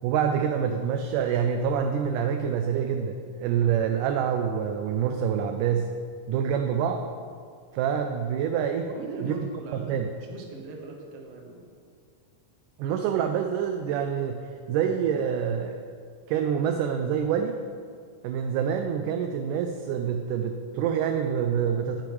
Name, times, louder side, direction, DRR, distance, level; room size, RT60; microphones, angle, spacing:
voice 1, 0.0-5.9 6.3-7.1 7.7-8.9 9.2-9.3 9.7-10.1 12.8-15.9 16.3-17.6 18.2-22.0, right 8 dB, 80° right, 5 dB, 1.9 m, -26 dB
voice 2, 8.9-11.7 21.6-21.8, right 3 dB, 60° right, 0 dB, 1.8 m, -40 dB
10.5 x 10.0 x 3.2 m, 2.1 s
omnidirectional pair, 4.0 m